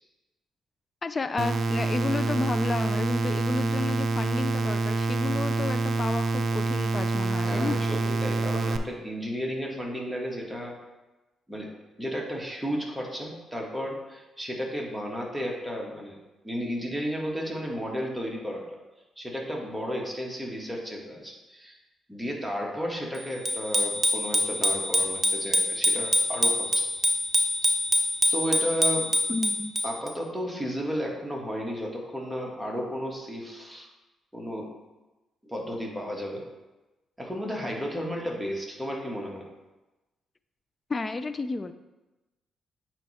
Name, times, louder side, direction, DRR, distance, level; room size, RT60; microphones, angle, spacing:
voice 1, 1.0-7.8 29.3-29.7 40.9-41.7, left 3 dB, 35° left, 12 dB, 0.4 m, -31 dB
sound 1, 1.4-8.8, right 3 dB, 50° right, 0.5 m, -27 dB
voice 2, 7.4-10.7 11.5-11.7 12.0-16.2 16.4-18.8 19.2-21.8 22.1-26.9 28.3-29.1 29.8-33.9 34.3-34.7 35.4-36.4 37.2-39.5, equal, 5° right, -2 dB, 1.8 m, -33 dB
Bicycle bell, 23.4-30.1, equal, 25° right, 0.8 m, -25 dB
8.7 x 3.2 x 4.3 m, 1.1 s
supercardioid pair, 55°, 0 cm